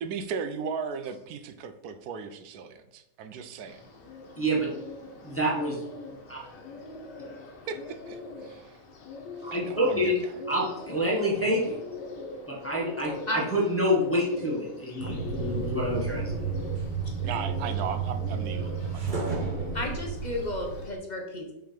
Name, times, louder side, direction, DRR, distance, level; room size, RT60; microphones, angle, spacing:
voice 1, 0.0-3.8 7.7-8.7 9.5-10.3 17.2-19.2, right 6 dB, 75° right, 9 dB, 1.0 m, -36 dB
Bird, 3.7-21.0, left 3 dB, 85° left, 1.5 m, -43 dB
voice 2, 4.4-4.7 5.2-5.8 6.3-6.4 9.4-10.2 10.5-11.8 12.5-16.5, equal, 10° left, -4 dB, 1.3 m, -27 dB
sound 1, 15.0-20.9, right 5 dB, 35° right, 0.9 m, -32 dB
voice 3, 19.7-21.5, left 1 dB, 35° left, 1 dB, 0.7 m, -32 dB
5.7 x 3.8 x 5.1 m, 0.87 s
omnidirectional pair, 1.8 m